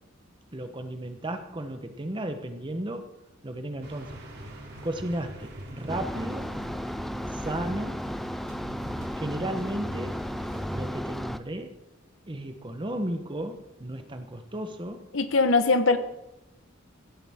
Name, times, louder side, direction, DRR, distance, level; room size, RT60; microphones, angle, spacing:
voice 1, 0.5-3.1 3.4-4.2 4.8-6.6 7.3-8.0 9.1-10.2 10.7-11.8 12.3-15.1, right 1 dB, 25° right, 7 dB, 0.9 m, -34 dB
sound 1, 3.8-10.9, right 1 dB, 50° right, 2.7 m, -41 dB
sound 2, 5.9-11.4, equal, ahead, 0.4 m, -34 dB
voice 2, 15.1-16.0, left 3 dB, 65° left, 9 dB, 1.1 m, -21 dB
16.5 x 13.0 x 3.6 m, 0.92 s
head